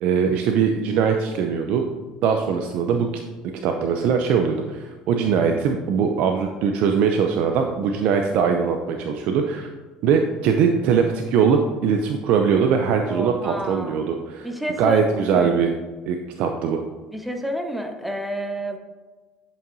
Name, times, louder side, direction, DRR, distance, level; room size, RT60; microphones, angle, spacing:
voice 1, 0.0-1.9 2.2-3.1 3.6-9.7 10.0-14.5 14.8-15.7 16.1-16.8, right 6 dB, 65° right, 4 dB, 0.6 m, -21 dB
voice 2, 13.1-14.0 14.4-15.5 17.1-18.8, equal, 5° right, 4 dB, 1.0 m, -28 dB
10.0 x 5.6 x 2.7 m, 1.3 s
supercardioid pair, 80°, 2 cm